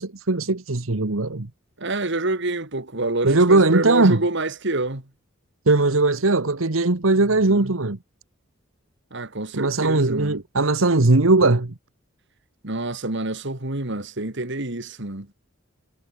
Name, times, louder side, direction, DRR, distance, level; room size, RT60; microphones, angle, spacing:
voice 1, 0.0-1.5 3.2-4.2 5.7-8.0 9.5-11.7, right 2 dB, 80° right, 1.4 m, -19 dB
voice 2, 1.8-5.1 7.3-7.8 9.1-10.4 12.6-15.3, right 2 dB, 60° right, 3.0 m, -27 dB
head